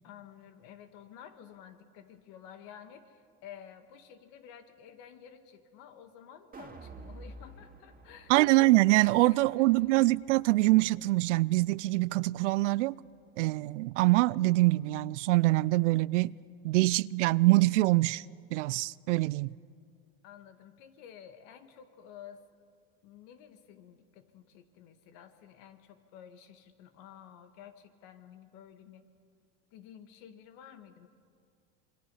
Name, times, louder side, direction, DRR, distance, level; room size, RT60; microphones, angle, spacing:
voice 1, 0.0-8.4 9.0-9.7 20.2-22.4 23.0-29.1 29.7-31.1, left 9 dB, 65° left, 1.9 m, -52 dB
sound 1, 6.5-12.7 13.1-13.2, right 2 dB, 25° right, 2.5 m, -52 dB
voice 2, 8.3-13.0 13.4-16.3 16.6-18.2 18.5-19.5, right 20 dB, 80° right, 0.5 m, -24 dB
27.0 x 23.0 x 5.7 m
hypercardioid pair, 90°, 36 cm